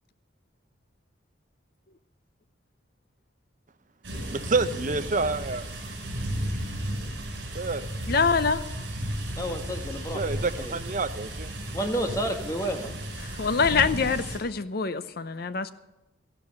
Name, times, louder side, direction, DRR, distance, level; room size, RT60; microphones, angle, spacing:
sound 1, 4.0-14.4, right 1 dB, 65° right, 4.9 m, -34 dB
voice 1, 4.3-5.7 7.5-7.9 10.1-11.6, right 3 dB, 40° right, 10 dB, 0.7 m, -28 dB
voice 2, 8.1-8.6 13.2-15.7, left 5 dB, 50° left, 13 dB, 0.7 m, -25 dB
voice 3, 9.4-10.8 11.7-12.9, right 1 dB, 15° left, 4 dB, 1.3 m, -31 dB
13.0 x 11.5 x 6.9 m, 0.97 s
head